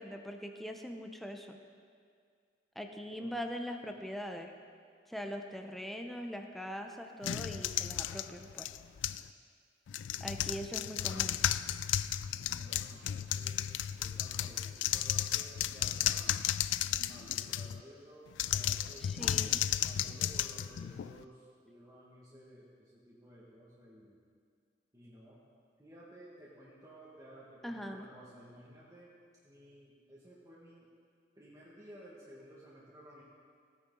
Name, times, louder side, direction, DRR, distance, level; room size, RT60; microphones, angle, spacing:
voice 1, 0.0-1.6 2.8-4.5 5.1-8.7 10.2-11.4 19.0-19.6 27.6-28.1, equal, ahead, 4 dB, 0.6 m, -42 dB
sound 1, 7.2-9.3 9.9-17.8 18.3-21.2, left 11 dB, 90° left, 0.3 m, -34 dB
voice 2, 10.0-10.5 12.3-13.6 14.0-16.4 17.0-19.1 19.8-21.4 21.6-24.2 24.9-25.4 25.8-29.1 29.4-30.8 31.4-33.2, equal, 20° right, -8 dB, 1.6 m, -55 dB
16.0 x 9.3 x 3.8 m, 2.1 s
head